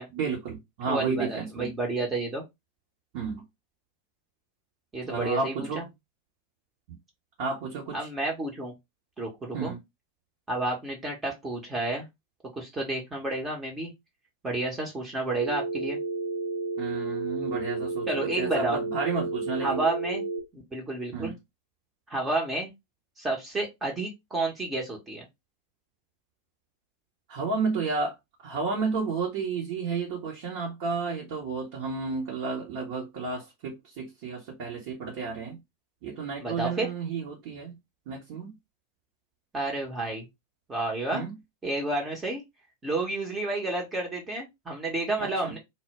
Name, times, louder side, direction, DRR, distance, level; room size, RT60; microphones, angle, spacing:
voice 1, 0.1-1.7 3.1-3.4 5.0-5.9 6.9-7.0 7.4-8.1 9.5-9.8 16.8-19.8 21.1-21.3 27.3-28.2 28.4-35.6 36.0-37.7 38.1-38.5 41.1-41.3 45.2-45.5, right 4 dB, 45° right, 0.8 m, -32 dB
voice 2, 0.9-2.4 4.9-5.8 7.9-8.7 9.2-9.7 10.5-12.1 12.5-13.9 14.4-16.0 18.1-18.8 19.6-20.2 20.5-21.3 22.1-22.7 23.2-25.3 36.4-36.9 39.5-40.3 40.7-41.2 41.6-42.4 42.8-45.6, right 2 dB, 15° right, 0.8 m, -30 dB
Telephone, 15.4-20.4, right 3 dB, 85° right, 0.7 m, -31 dB
2.1 x 2.1 x 3.3 m
figure-of-eight pair, 90°, 0 cm